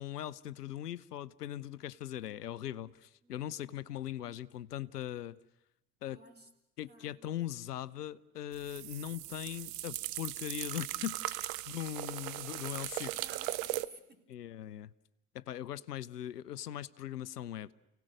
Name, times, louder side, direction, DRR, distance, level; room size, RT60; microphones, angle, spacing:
voice 1, 0.0-5.4 6.0-6.2 6.8-13.1 14.3-14.9 15.3-17.7, left 12 dB, 85° left, 17 dB, 0.7 m, -40 dB
voice 2, 6.1-6.5 6.9-7.2 11.7-12.2 13.1-14.3, right 2 dB, 20° right, 3 dB, 3.6 m, -57 dB
sound 1, 8.5-13.8, right 17 dB, 50° right, 0.8 m, -38 dB
30.0 x 17.5 x 6.4 m, 0.89 s
figure-of-eight pair, 65°, 46 cm